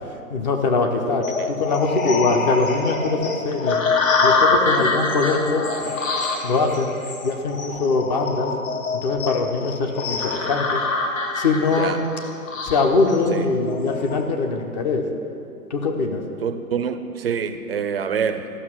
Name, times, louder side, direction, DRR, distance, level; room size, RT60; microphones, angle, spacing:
voice 1, 0.3-3.8 4.2-5.9 6.4-6.9 7.2-8.5 9.0-10.8 11.4-12.0 12.6-15.0 15.7-16.2, left 3 dB, 30° left, 3 dB, 0.8 m, -22 dB
sound 1, 1.2-14.2, left 4 dB, 55° left, 1.4 m, -25 dB
voice 2, 11.7-12.0 13.3-13.6 16.4-18.5, right 7 dB, 40° right, 10 dB, 0.6 m, -26 dB
13.5 x 5.9 x 6.0 m, 2.6 s
figure-of-eight pair, 130°, 47 cm